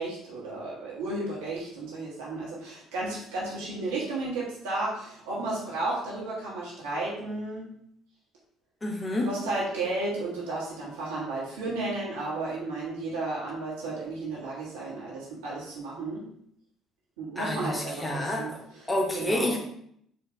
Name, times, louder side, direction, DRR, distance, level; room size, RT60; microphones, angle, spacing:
voice 1, 0.0-7.7 9.2-16.2 17.2-19.6, right 2 dB, 75° right, -6 dB, 1.5 m, -33 dB
voice 2, 8.8-9.3 17.4-18.5 18.9-19.6, left 1 dB, 15° left, 0 dB, 1.1 m, -28 dB
4.9 x 2.8 x 3.2 m, 0.70 s
figure-of-eight pair, 55°, 0 cm